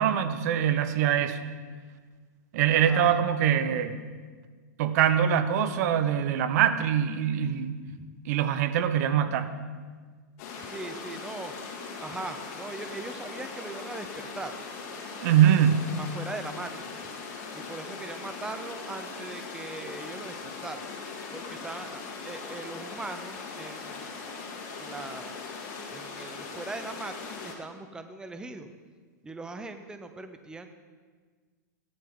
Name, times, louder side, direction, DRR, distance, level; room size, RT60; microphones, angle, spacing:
voice 1, 0.0-1.5 2.5-4.1 4.8-7.8 8.2-9.5 15.2-15.9, right 9 dB, 60° right, 11 dB, 1.0 m, -23 dB
voice 2, 2.7-3.3 7.9-8.1 10.7-11.5 12.0-14.6 16.0-17.0 17.5-20.9 21.3-24.3 24.8-25.4 25.9-28.7 29.2-30.7, right 3 dB, 10° right, 8 dB, 0.7 m, -40 dB
sound 1, 10.4-27.5, left 4 dB, 55° left, 2.8 m, -40 dB
16.5 x 11.0 x 3.9 m, 1.5 s
hypercardioid pair, 125°, 10 cm